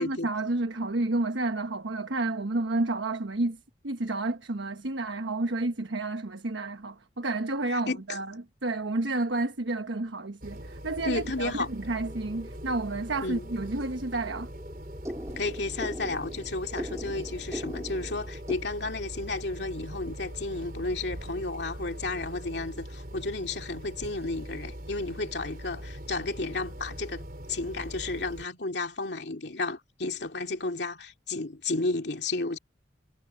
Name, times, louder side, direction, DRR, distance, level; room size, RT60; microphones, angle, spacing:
voice 1, 0.0-3.6 3.8-8.3 8.6-14.5, right 2 dB, 85° right, 1.2 m, -30 dB
voice 2, 7.7-8.2 11.0-11.7 13.2-13.5 15.4-27.2 27.5-32.6, left 3 dB, 65° left, 2.4 m, -32 dB
sound 1, 10.4-28.5, equal, 50° right, 4.7 m, -42 dB
sound 2, 12.1-18.6, equal, 15° right, 2.3 m, -41 dB
head